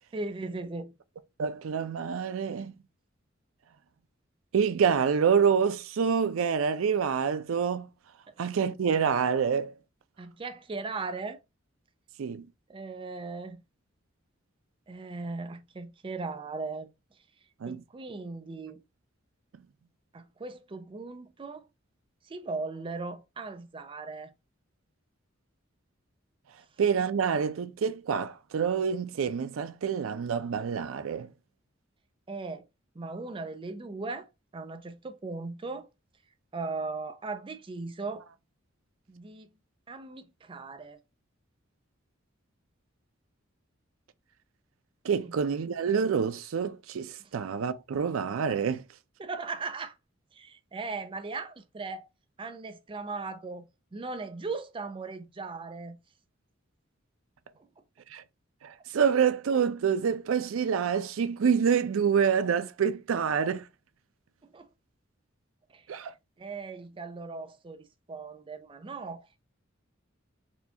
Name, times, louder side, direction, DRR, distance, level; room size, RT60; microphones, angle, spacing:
voice 1, 0.1-0.9 8.3-8.4 10.2-11.4 12.7-13.6 14.9-16.9 17.7-18.8 20.1-21.7 22.3-24.3 32.3-32.6 32.9-35.9 36.5-38.2 39.1-39.5 39.9-41.0 45.2-45.3 49.2-49.9 50.3-52.1 52.4-53.7 53.9-56.0 64.4-64.7 65.7-66.1 66.4-69.4, right 3 dB, 25° right, 0.4 m, -38 dB
voice 2, 1.4-2.7 4.5-7.9 8.4-9.7 12.2-12.4 17.6-17.8 26.8-31.3 45.0-48.8 58.1-58.2 58.6-63.7 65.9-66.1, right 6 dB, 90° right, 0.4 m, -27 dB
4.3 x 2.3 x 2.7 m
head